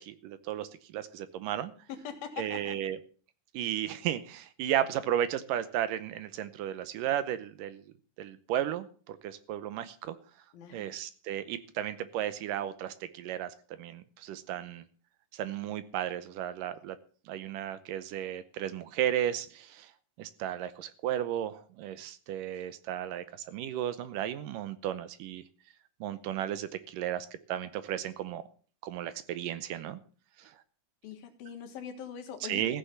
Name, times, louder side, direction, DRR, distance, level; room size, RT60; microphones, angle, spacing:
voice 1, 0.0-1.7 2.4-3.0 3.5-7.8 8.2-10.2 10.7-14.8 15.3-17.0 17.3-19.9 20.2-25.4 26.0-28.4 28.8-30.0 32.4-32.8, right 11 dB, 75° right, 13 dB, 2.3 m, -34 dB
voice 2, 1.9-2.8 3.6-3.7 10.5-10.9 31.0-32.8, left 8 dB, 85° left, 4 dB, 3.5 m, -42 dB
15.5 x 6.9 x 7.2 m, 0.42 s
omnidirectional pair, 4.1 m